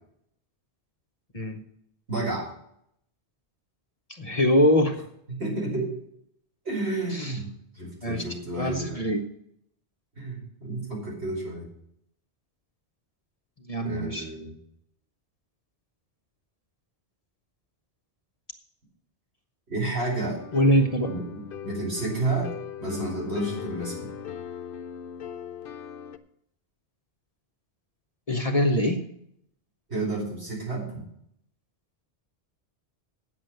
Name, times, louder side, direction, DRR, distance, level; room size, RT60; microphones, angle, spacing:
voice 1, 2.1-2.5 5.3-5.9 6.7-7.5 7.7-9.0 10.2-11.7 13.8-14.5 19.7-20.4 21.1-22.5 22.8-24.1 29.9-30.9, right 2 dB, 75° right, -3 dB, 5.2 m, -30 dB
voice 2, 4.1-4.9 7.1-7.4 8.0-8.2 8.6-9.2 13.7-14.3 20.5-21.1 28.3-29.0, equal, 35° left, 3 dB, 1.0 m, -23 dB
sound 1, 20.4-26.2, left 8 dB, 60° left, 0.8 m, -39 dB
9.0 x 7.6 x 7.7 m, 0.72 s
omnidirectional pair, 1.1 m